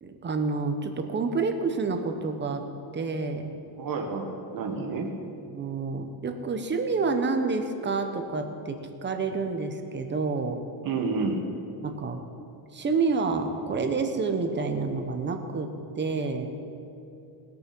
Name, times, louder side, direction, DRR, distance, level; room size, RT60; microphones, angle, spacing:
voice 1, 0.0-2.6 2.9-3.5 5.5-10.6 11.8-12.2 12.7-16.5, right 4 dB, 20° right, 6 dB, 0.9 m, -28 dB
voice 2, 3.8-5.1 10.8-11.4, right 4 dB, 45° right, 2 dB, 1.8 m, -29 dB
20.0 x 6.8 x 6.0 m, 2.7 s
cardioid pair, 175°, 48 cm